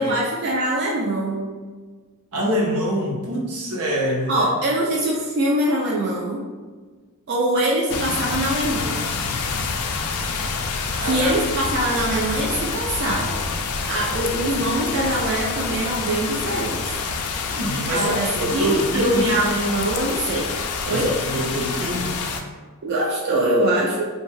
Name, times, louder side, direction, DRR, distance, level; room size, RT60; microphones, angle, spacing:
voice 1, 0.0-1.5 4.3-6.4 7.3-9.1 11.0-13.4 13.9-17.0 17.9-20.6 20.9-21.1 22.8-24.1, right 1 dB, 50° right, -4 dB, 0.4 m, -23 dB
voice 2, 2.3-4.5 11.0-11.3 17.5-19.4 20.9-22.2, equal, 80° right, -2 dB, 0.7 m, -25 dB
sound 1, 7.9-22.4, left 5 dB, 80° left, 0.3 m, -27 dB
2.5 x 2.2 x 3.1 m, 1.4 s
head